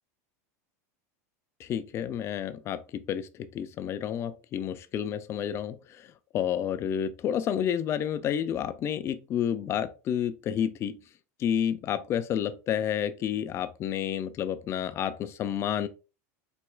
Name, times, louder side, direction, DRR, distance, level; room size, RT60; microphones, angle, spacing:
voice 1, 1.6-11.0 11.4-15.9, left 9 dB, 30° left, 0.3 m, -30 dB
4.2 x 2.2 x 2.2 m
supercardioid pair, 135°, 8 cm